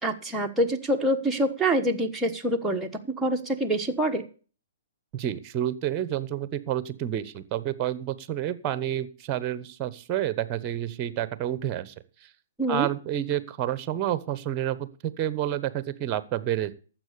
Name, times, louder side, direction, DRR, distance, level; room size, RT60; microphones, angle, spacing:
voice 1, 0.0-2.9 3.2-4.2 12.6-12.9, right 1 dB, 5° right, 1 dB, 1.3 m, -25 dB
voice 2, 5.1-11.9 12.2-12.3 12.7-16.7, right 11 dB, 30° right, 16 dB, 1.0 m, -29 dB
12.0 x 7.7 x 6.8 m, 0.39 s
hypercardioid pair, 130°, 0 cm